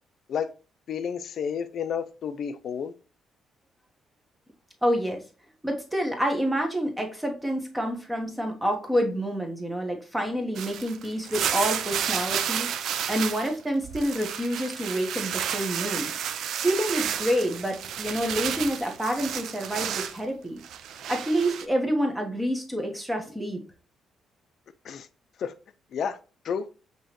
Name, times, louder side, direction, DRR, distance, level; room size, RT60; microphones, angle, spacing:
voice 1, 0.9-2.9 24.9-25.1 25.4-25.5 25.9-26.2 26.4-26.7, left 7 dB, 65° left, 0.4 m, -30 dB
voice 2, 4.8-5.2 5.6-12.7 13.1-16.1 16.6-20.6 21.1-23.6, equal, 10° right, 1.1 m, -28 dB
sound 1, 10.5-13.5 13.8-20.2 20.6-21.6, right 9 dB, 75° right, 0.3 m, -31 dB
5.4 x 3.0 x 2.9 m
cardioid pair, 90°, 0 cm